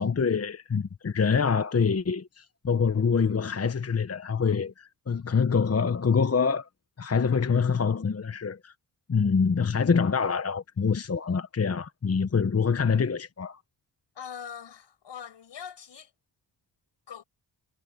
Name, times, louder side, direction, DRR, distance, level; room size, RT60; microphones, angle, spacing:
voice 1, 0.0-6.7 7.0-8.7 9.1-13.6, left 5 dB, 35° left, 1.1 m, -25 dB
voice 2, 14.2-16.1 17.1-17.2, left 7 dB, 70° left, 7.3 m, -42 dB
cardioid pair, 55°, 44 cm